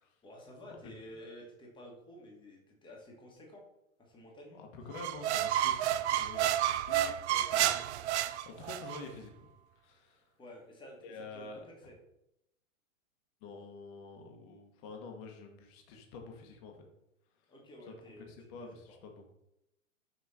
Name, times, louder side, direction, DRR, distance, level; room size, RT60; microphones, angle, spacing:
voice 1, 0.2-3.6 4.0-4.6 10.4-11.9 17.5-18.8, equal, 10° left, -1 dB, 1.6 m, -52 dB
voice 2, 4.6-9.5 9.8-10.3 11.0-11.7 13.4-16.9 17.8-19.3, left 4 dB, 40° left, 3 dB, 1.3 m, -48 dB
sound 1, 4.9-9.0, right 12 dB, 55° right, 0.4 m, -30 dB
6.0 x 4.5 x 4.2 m, 0.83 s
hypercardioid pair, 130°, 40 cm